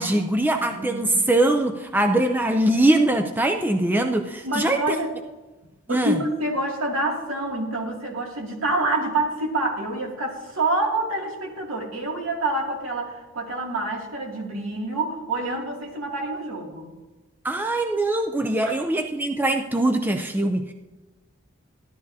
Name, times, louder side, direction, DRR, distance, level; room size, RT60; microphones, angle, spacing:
voice 1, 0.0-5.0 5.9-6.2 17.4-20.7, right 1 dB, 10° right, 5 dB, 0.4 m, -22 dB
voice 2, 0.6-1.3 4.4-5.1 5.9-16.9 18.6-18.7, right 2 dB, 70° right, -1 dB, 2.5 m, -27 dB
15.5 x 11.5 x 2.7 m, 1.1 s
head